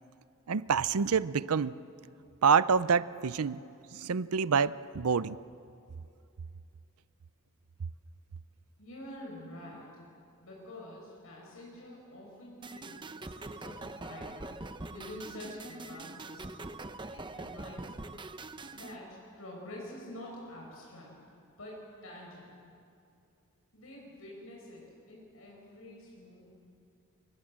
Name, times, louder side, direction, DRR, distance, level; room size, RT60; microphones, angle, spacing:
voice 1, 0.5-1.7 2.4-3.6 3.9-5.4, right 6 dB, 85° right, 16 dB, 0.6 m, -27 dB
voice 2, 8.8-9.9 10.4-16.8 17.1-18.2 18.7-21.2 21.6-22.7 23.7-26.4, left 1 dB, 70° left, -3 dB, 6.1 m, -47 dB
sound 1, 12.6-19.0, right 2 dB, 20° right, 0.8 m, -43 dB
28.5 x 24.5 x 7.6 m, 2.5 s
head